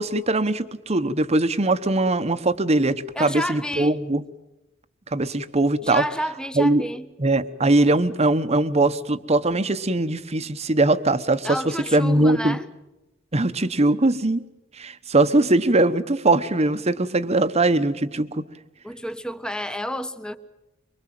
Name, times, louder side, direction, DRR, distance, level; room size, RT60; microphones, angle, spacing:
voice 1, 0.0-4.2 5.1-6.0 6.6-6.8 7.2-12.6 13.3-14.4 14.8-18.4, right 2 dB, 35° right, 1.1 m, -21 dB
voice 2, 3.1-4.0 5.8-7.1 11.4-12.6 18.8-20.4, equal, 5° left, 1.1 m, -30 dB
24.0 x 24.0 x 7.7 m
head